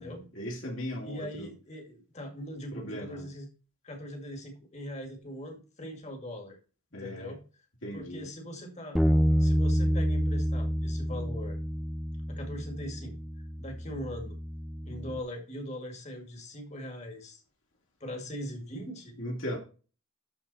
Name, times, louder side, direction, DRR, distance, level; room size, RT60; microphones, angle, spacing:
voice 1, 0.0-1.5 2.7-3.3 6.9-7.4 7.8-8.3 19.2-19.6, equal, 60° left, 2.8 m, -38 dB
voice 2, 1.0-3.5 3.8-6.6 7.0-7.4 7.9-9.0 9.4-11.6 12.3-13.2 13.6-14.4 14.8-17.4 18.0-19.2, equal, 30° left, 2.2 m, -41 dB
Bass guitar, 9.0-15.2, equal, ahead, 0.5 m, -28 dB
12.5 x 4.3 x 4.2 m
head